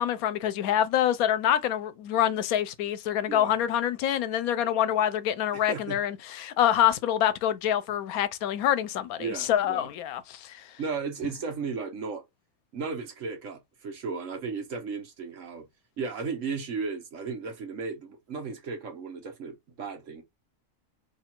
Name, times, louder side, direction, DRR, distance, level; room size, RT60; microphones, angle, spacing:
voice 1, 0.0-10.7, left 10 dB, 80° left, 1.1 m, -26 dB
voice 2, 3.3-3.6 5.5-6.0 9.2-9.9 10.8-12.2 12.7-15.7 16.0-20.2, right 5 dB, 65° right, 1.3 m, -35 dB
3.1 x 2.4 x 4.3 m
omnidirectional pair, 1.5 m